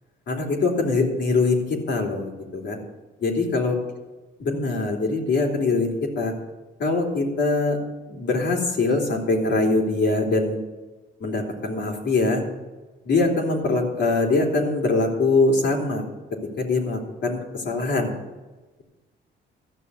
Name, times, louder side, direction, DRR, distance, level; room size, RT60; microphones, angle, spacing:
voice 1, 0.3-2.8 3.2-3.7 4.5-6.3 6.8-7.8 8.1-10.6 11.2-12.4 13.1-16.0 16.6-18.1, left 3 dB, 60° left, 0 dB, 3.3 m, -23 dB
14.0 x 6.4 x 9.8 m, 1.2 s
cardioid pair, 90°, 20 cm